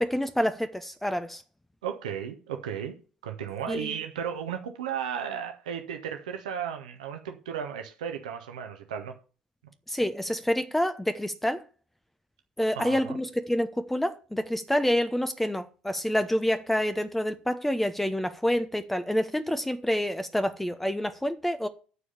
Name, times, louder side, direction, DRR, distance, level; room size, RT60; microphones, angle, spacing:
voice 1, 0.0-1.4 3.7-3.9 9.9-11.6 12.6-21.7, equal, 5° left, 0.9 m, -27 dB
voice 2, 1.8-3.0 3.2-9.1 12.7-13.2, right 8 dB, 70° right, 1.4 m, -34 dB
9.9 x 4.9 x 7.1 m
figure-of-eight pair, 60°, 4 cm